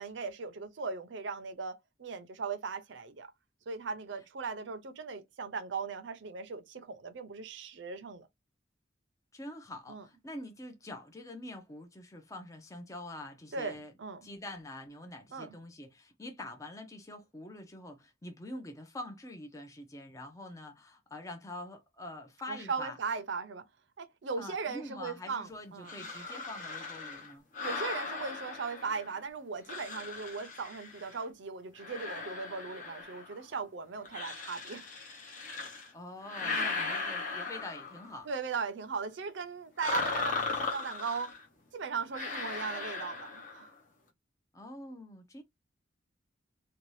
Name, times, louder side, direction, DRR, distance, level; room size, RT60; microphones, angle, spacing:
voice 1, 0.0-3.3 3.7-8.3 9.9-10.0 13.5-14.3 15.3-15.5 22.5-23.7 24.0-25.9 27.6-34.8 36.4-36.8 38.3-41.4 41.7-43.7, right 5 dB, 70° right, 0.6 m, -38 dB
voice 2, 9.3-13.9 14.2-23.0 24.4-27.4 35.9-38.3 44.5-45.4, left 1 dB, 15° left, 0.5 m, -45 dB
sound 1, 25.8-29.2 29.6-31.2 31.8-33.4 34.0-35.9 36.2-38.1 39.8-41.4 42.1-43.7, left 4 dB, 45° left, 0.8 m, -38 dB
2.6 x 2.3 x 3.1 m
head